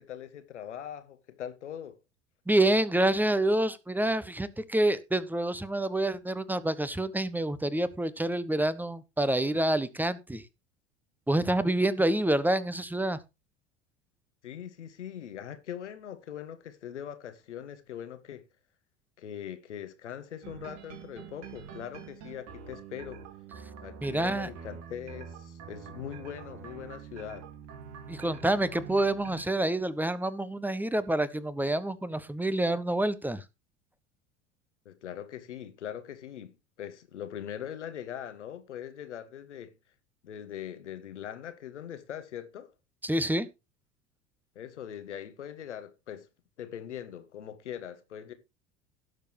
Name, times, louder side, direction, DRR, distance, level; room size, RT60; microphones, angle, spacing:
voice 1, 0.0-2.0 14.4-18.4 19.2-23.2 23.8-27.5 34.8-39.7 40.2-42.7 44.5-46.3 46.6-48.3, left 10 dB, 80° left, 1.5 m, -41 dB
voice 2, 2.5-10.4 11.3-13.2 24.0-24.5 28.1-33.4 43.0-43.5, right 1 dB, 5° right, 1.1 m, -27 dB
sound 1, 20.4-29.4, right 7 dB, 50° right, 2.1 m, -46 dB
17.0 x 6.8 x 3.0 m
figure-of-eight pair, 75°, 35 cm